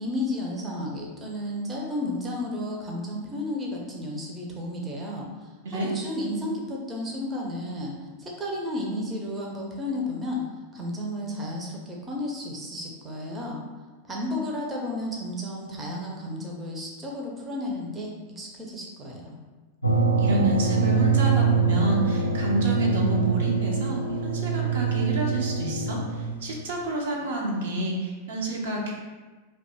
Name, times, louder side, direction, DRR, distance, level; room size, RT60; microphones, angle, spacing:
voice 1, 0.0-10.4 10.7-13.6 14.1-19.4, left 1 dB, 15° right, -2 dB, 0.6 m, -32 dB
sound 1, 19.8-26.6, right 5 dB, 85° left, 0.3 m, -24 dB
voice 2, 20.2-28.9, right 1 dB, 60° right, -2 dB, 0.6 m, -28 dB
2.7 x 2.2 x 4.1 m, 1.3 s
figure-of-eight pair, 90°, 0 cm